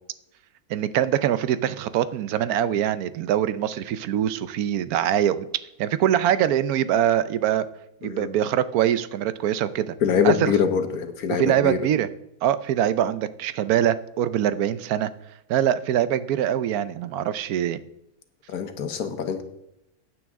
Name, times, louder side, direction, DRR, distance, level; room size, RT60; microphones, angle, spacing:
voice 1, 0.7-5.5 5.8-7.7 8.0-10.0 10.2-10.5 11.4-12.1 12.4-15.1 15.5-17.8, right 10 dB, 75° right, 14 dB, 1.1 m, -23 dB
voice 2, 10.0-11.8 18.5-19.4, left 7 dB, 80° left, 8 dB, 1.6 m, -24 dB
15.0 x 9.2 x 3.6 m, 0.84 s
omnidirectional pair, 1.6 m